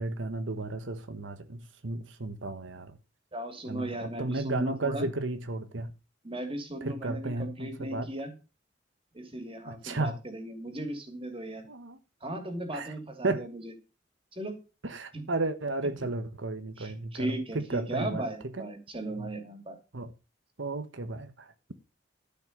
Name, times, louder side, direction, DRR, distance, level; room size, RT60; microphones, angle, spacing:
voice 1, 0.0-3.0 3.7-5.9 6.8-8.1 9.7-10.1 11.7-12.0 12.7-12.9 13.2-13.4 14.8-18.2 18.6-18.7 19.2-19.3 19.9-20.1 20.6-21.5, right 2 dB, 90° right, 1.2 m, -33 dB
voice 2, 3.3-5.1 6.2-8.3 9.1-11.6 12.2-13.7 14.3-14.5 15.1-15.2 16.0-16.1 16.8-19.8, right 1 dB, 30° right, 2.9 m, -37 dB
13.0 x 5.9 x 6.7 m
head